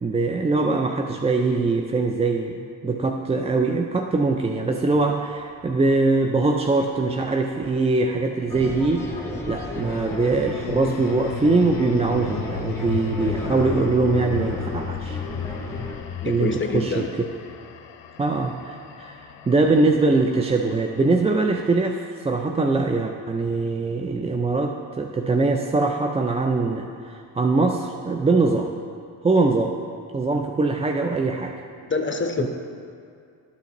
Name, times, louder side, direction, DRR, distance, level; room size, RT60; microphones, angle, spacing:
voice 1, 0.0-9.1 9.5-15.2 16.2-17.3 18.2-28.7 29.2-29.8 30.1-31.6 32.4-32.5, right 3 dB, 15° right, 4 dB, 0.3 m, -22 dB
sound 1, 5.6-7.9 9.5-21.8, left 8 dB, 65° left, 0.7 m, -36 dB
sound 2, 8.5-16.0, left 1 dB, 5° left, 1.5 m, -34 dB
voice 2, 16.2-17.2 31.0-31.1 31.9-32.5, left 4 dB, 25° left, 4 dB, 0.9 m, -26 dB
12.5 x 5.7 x 3.0 m, 2.3 s
supercardioid pair, 60°, 47 cm